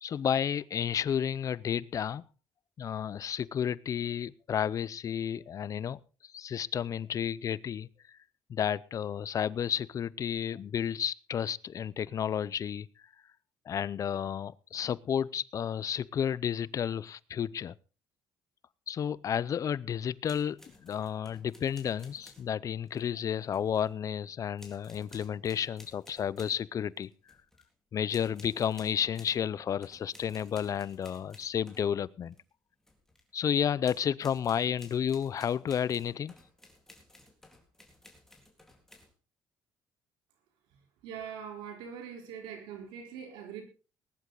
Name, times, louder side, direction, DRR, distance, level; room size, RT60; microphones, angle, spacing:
voice 1, 0.0-2.2 2.8-7.9 8.5-12.9 13.7-17.7 18.9-27.1 27.9-32.3 33.3-36.3, left 8 dB, 45° left, 0.6 m, -32 dB
sound 1, 20.3-22.5 22.9-23.9 24.6-26.6 27.0-27.7 28.1-29.4 29.8-32.4 32.8-33.3 33.8-39.1, left 1 dB, 5° left, 3.9 m, -56 dB
voice 2, 41.0-43.6, right 7 dB, 90° right, 4.0 m, -42 dB
20.0 x 11.0 x 4.0 m
cardioid pair, 95°, 8 cm